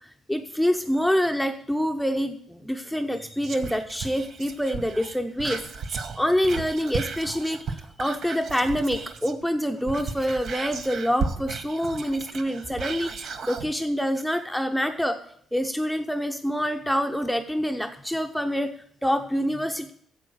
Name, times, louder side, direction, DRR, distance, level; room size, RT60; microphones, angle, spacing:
voice 1, 0.0-5.6 6.2-15.2 15.5-18.7 19.0-19.9, equal, ahead, 5 dB, 0.7 m, -26 dB
Whispering, 3.4-9.4 9.8-13.7 14.2-14.3, right 5 dB, 60° right, 0.8 m, -34 dB
8.9 x 7.7 x 6.3 m, 0.64 s
cardioid pair, 90°, 0 cm